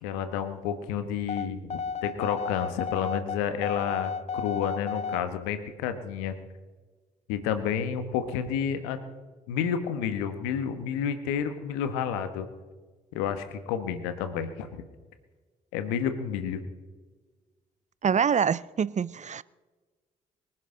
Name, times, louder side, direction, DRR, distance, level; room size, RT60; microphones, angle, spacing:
voice 1, 0.0-6.3 7.3-9.0 9.5-12.5 13.1-14.8 15.7-16.6, left 8 dB, 80° left, 10 dB, 1.4 m, -30 dB
sound 1, 1.3-5.3, left 6 dB, 35° left, 0.5 m, -33 dB
voice 2, 18.0-19.4, right 7 dB, 35° right, 21 dB, 0.5 m, -25 dB
24.5 x 10.5 x 3.9 m, 1.3 s
hypercardioid pair, 40°, 20 cm